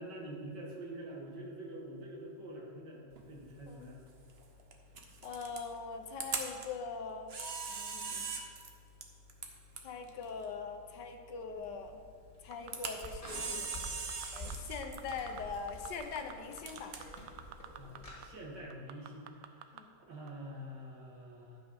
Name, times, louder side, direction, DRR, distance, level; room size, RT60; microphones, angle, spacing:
voice 1, 0.0-4.0 17.8-21.6, right 1 dB, 70° right, -3 dB, 2.4 m, -46 dB
Camera, 3.1-18.6, right 4 dB, 45° right, 0.9 m, -44 dB
voice 2, 5.2-7.3 7.7-8.3 9.8-12.0 12.4-13.7 14.3-16.9 19.7-19.9, left 5 dB, 70° left, 6 dB, 1.4 m, -42 dB
sound 1, 11.5-18.2, equal, 20° left, 1.9 m, -49 dB
sound 2, 12.5-13.3 13.6-14.5 14.8-15.4 15.7-18.0 18.2-18.3 18.7-19.8 20.3-20.4, right 12 dB, 85° right, 1.3 m, -48 dB
11.5 x 5.8 x 5.8 m, 2.2 s
omnidirectional pair, 2.0 m